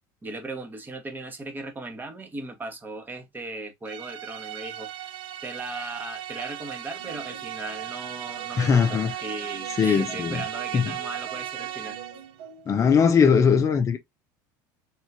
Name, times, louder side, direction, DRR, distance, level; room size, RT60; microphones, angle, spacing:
voice 1, 0.2-4.9 5.4-12.0, right 2 dB, 20° right, 1.3 m, -37 dB
sound 1, 3.9-12.3, right 12 dB, 55° right, 0.5 m, -36 dB
sound 2, 6.9-12.8, right 6 dB, 80° right, 1.2 m, -46 dB
voice 2, 8.6-9.1 9.8-10.4 10.7-10.9 12.7-14.0, left 6 dB, 30° left, 0.6 m, -20 dB
3.7 x 2.9 x 2.8 m
supercardioid pair, 95°, 10 cm